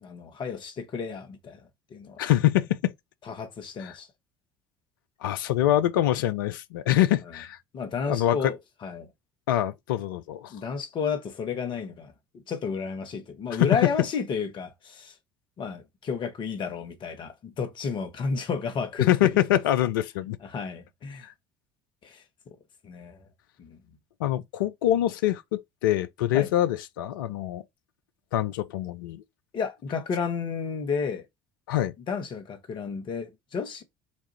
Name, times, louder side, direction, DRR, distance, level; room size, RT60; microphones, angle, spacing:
voice 1, 0.0-1.6 1.9-2.2 3.3-4.1 7.7-8.6 8.8-9.1 10.5-15.1 15.6-19.4 20.4-21.3 22.0-22.6 22.8-23.3 23.6-23.8 26.3-26.5 29.5-31.2 32.1-33.8, left 5 dB, 45° left, 1.1 m, -32 dB
voice 2, 2.2-2.9 3.8-4.0 5.2-7.6 8.1-8.5 9.5-10.5 13.5-13.7 19.0-20.4 21.2-21.3 24.2-27.6 28.3-29.2 31.7-31.9, left 13 dB, 70° left, 0.4 m, -25 dB
4.2 x 2.4 x 4.3 m
figure-of-eight pair, 60°, 11 cm